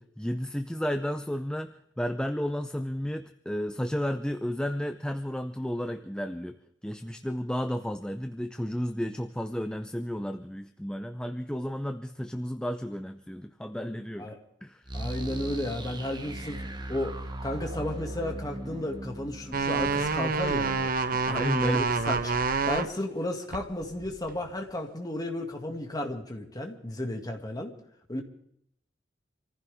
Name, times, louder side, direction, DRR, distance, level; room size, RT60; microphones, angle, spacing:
voice 1, 0.2-6.6 6.8-14.3 14.6-14.8 21.1-21.9, equal, 5° left, 8 dB, 0.6 m, -32 dB
voice 2, 14.9-16.6 16.9-20.9 21.6-22.3 22.7-27.7 28.1-28.2, left 1 dB, 20° left, 3 dB, 2.3 m, -33 dB
sound 1, 14.9-21.7, right 1 dB, 25° right, 1.2 m, -39 dB
sound 2, 19.5-22.9 23.5-24.5, right 4 dB, 50° right, 1.0 m, -27 dB
26.5 x 15.0 x 3.6 m, 0.71 s
head